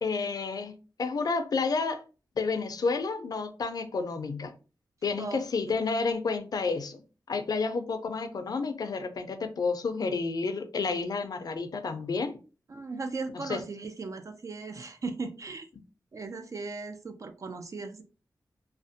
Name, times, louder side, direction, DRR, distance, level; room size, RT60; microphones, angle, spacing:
voice 1, 0.0-0.7 1.0-2.0 2.4-4.5 5.0-7.0 7.3-12.4 13.3-13.6, left 4 dB, 60° left, 0.4 m, -30 dB
voice 2, 12.7-15.7 16.1-18.0, right 3 dB, 45° right, 0.3 m, -37 dB
2.4 x 2.0 x 2.5 m
wide cardioid pair, 75°, 7 cm